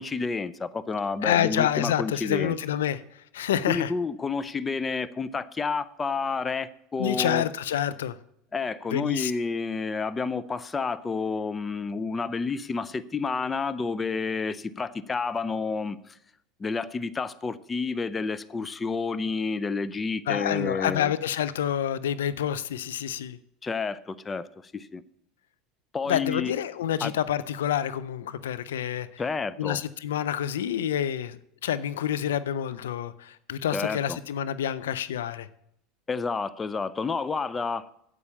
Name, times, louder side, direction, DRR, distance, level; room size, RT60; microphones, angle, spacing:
voice 1, 0.0-2.5 3.7-7.4 8.5-16.2 16.6-21.1 23.6-25.0 25.9-26.5 27.0-27.1 29.2-29.8 33.7-34.2 36.1-37.9, left 4 dB, 25° left, 15 dB, 0.6 m, -30 dB
voice 2, 1.2-3.9 7.0-8.2 8.9-9.5 20.3-23.4 26.1-29.2 29.6-35.5, left 10 dB, 80° left, 15 dB, 0.5 m, -28 dB
8.6 x 8.4 x 7.0 m, 0.75 s
hypercardioid pair, 85°, 0 cm